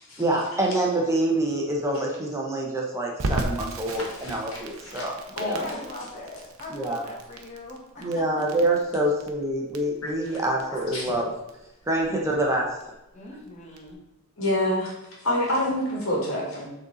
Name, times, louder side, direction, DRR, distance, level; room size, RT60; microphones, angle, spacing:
voice 1, 0.2-5.6 6.7-7.1 8.0-11.3 11.9-12.7, right 1 dB, 15° right, -2 dB, 1.0 m, -26 dB
Crackle, 3.2-13.9, right 2 dB, 80° right, 0.8 m, -37 dB
voice 2, 3.9-5.0 5.4-5.8 10.0-10.1 10.9-11.0 14.4-14.9 15.2-16.6, left 1 dB, 75° left, -3 dB, 2.3 m, -27 dB
voice 3, 5.6-8.4 13.1-14.0, left 2 dB, 35° left, -3 dB, 1.6 m, -41 dB
6.8 x 4.1 x 4.0 m, 0.93 s
head